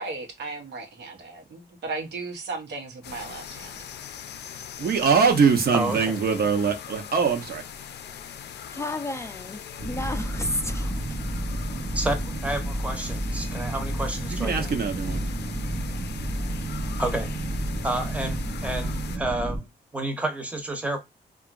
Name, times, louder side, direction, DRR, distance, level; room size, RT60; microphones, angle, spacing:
voice 1, 0.0-3.8, right 3 dB, 90° right, 0.9 m, -36 dB
sound 1, 3.0-19.2, left 8 dB, 80° left, 0.4 m, -41 dB
voice 2, 4.8-7.6 14.3-15.3, right 5 dB, 65° right, 0.7 m, -22 dB
voice 3, 5.7-6.2 11.9-14.7 17.0-17.3 17.8-19.7 19.9-21.0, right 1 dB, 10° right, 0.7 m, -30 dB
voice 4, 8.7-11.0, left 2 dB, 15° left, 0.4 m, -32 dB
sound 2, 9.8-19.6, right 1 dB, 35° right, 0.9 m, -30 dB
2.8 x 2.4 x 2.3 m
cardioid pair, 90°, 17 cm